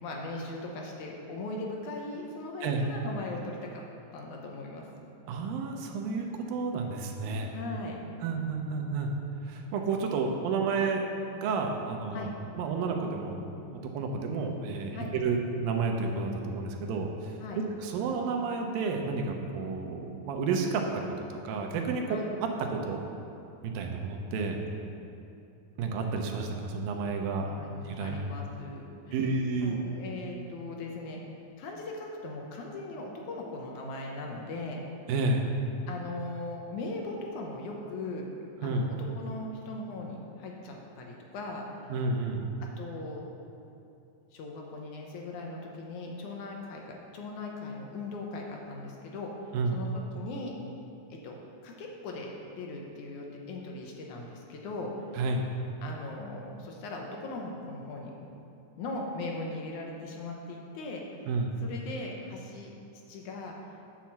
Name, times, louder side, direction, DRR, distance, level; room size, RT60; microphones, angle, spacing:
voice 1, 0.0-3.8 4.1-4.9 7.5-8.0 12.1-12.3 14.9-15.1 17.4-17.6 22.1-22.3 27.4-31.2 31.6-34.8 35.9-38.3 38.6-41.9 42.6-43.2 44.3-49.3 49.7-50.5 51.1-51.4 51.6-54.9 55.8-58.1 58.8-61.3 61.6-62.7 63.1-63.7, left 2 dB, 70° left, 0 dB, 2.1 m, -39 dB
voice 2, 5.3-7.5 8.2-9.1 9.5-11.1 11.3-12.3 12.6-13.4 13.7-20.9 21.4-23.0 23.6-24.6 25.8-27.5 27.9-28.2 29.1-29.8 35.1-35.5 38.6-38.9 41.9-42.4 49.5-49.8 55.2-55.4 61.3-61.6, right 4 dB, 90° right, 2 dB, 2.7 m, -31 dB
9.8 x 5.9 x 7.3 m, 2.7 s
omnidirectional pair, 4.0 m